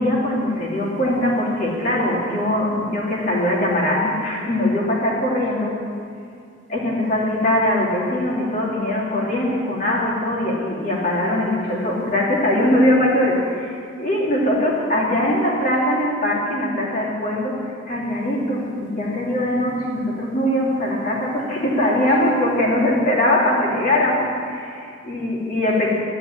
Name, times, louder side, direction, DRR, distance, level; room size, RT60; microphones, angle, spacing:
voice 1, 0.0-5.7 6.7-26.0, left 1 dB, 40° left, -3 dB, 2.9 m, -21 dB
12.5 x 7.7 x 9.9 m, 2.3 s
head